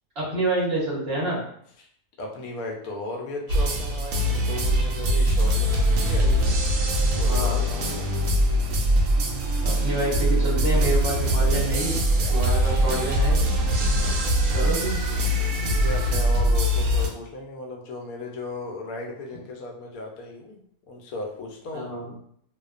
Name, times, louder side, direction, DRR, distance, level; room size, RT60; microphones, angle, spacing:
voice 1, 0.1-1.4 6.1-6.5 7.2-7.6 9.6-12.0 12.3-13.4 14.5-15.0 21.7-22.0, right 1 dB, 50° right, -6 dB, 1.0 m, -28 dB
voice 2, 2.2-6.3 6.8-8.1 12.3-12.5 13.9-14.7 15.6-20.6 20.9-21.9, left 2 dB, 85° left, 1 dB, 1.1 m, -36 dB
sound 1, 3.5-17.1, equal, 80° right, 1.0 m, -22 dB
2.7 x 2.2 x 2.4 m, 0.66 s
omnidirectional pair, 1.5 m